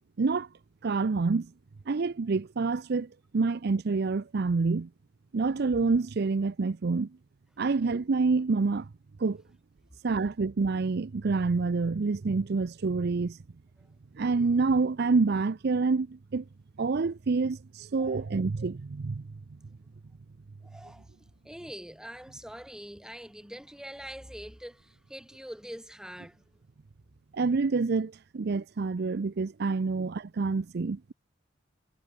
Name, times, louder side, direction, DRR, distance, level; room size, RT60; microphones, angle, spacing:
voice 1, 0.2-0.5 0.8-1.5 1.9-4.9 5.3-7.1 7.6-8.9 9.2-9.4 10.0-13.4 14.2-16.4 16.8-19.2 27.3-31.1, right 4 dB, 55° right, 0.5 m, -27 dB
voice 2, 18.0-18.4 20.6-21.1 21.4-26.4, equal, 5° right, 5.6 m, -44 dB
head